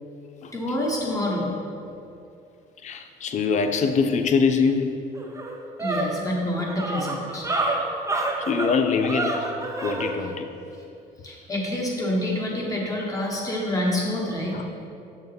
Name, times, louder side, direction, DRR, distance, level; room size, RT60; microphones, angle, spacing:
voice 1, 0.5-1.5 5.8-7.5 11.2-14.6, left 1 dB, 20° left, -2 dB, 1.3 m, -27 dB
voice 2, 2.8-5.0 8.4-9.5 9.8-10.5 14.5-14.6, left 5 dB, 45° left, 7 dB, 0.5 m, -23 dB
sound 1, 4.7-4.8 5.1-10.1, right 2 dB, 20° right, 0.7 m, -28 dB
6.5 x 6.3 x 3.5 m, 2.6 s
cardioid pair, 110°, 17 cm